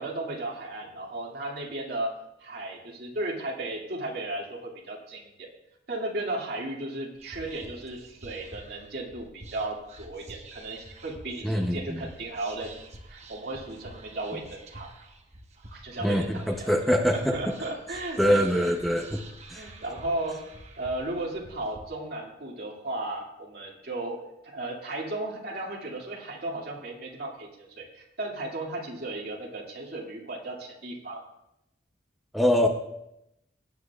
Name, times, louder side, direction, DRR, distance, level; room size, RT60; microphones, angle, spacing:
voice 1, 0.0-5.5 5.9-12.7 13.1-14.9 15.7-16.7 17.1-18.8 19.5-31.2, right 2 dB, 55° right, -2 dB, 2.3 m, -35 dB
Whispering, 7.1-21.8, right 1 dB, 35° right, 1.1 m, -48 dB
voice 2, 11.4-12.0 16.0-16.4 16.7-17.4 18.2-19.2 19.5-19.7 32.3-32.7, equal, ahead, 2 dB, 0.7 m, -23 dB
19.0 x 9.7 x 2.4 m, 0.85 s
head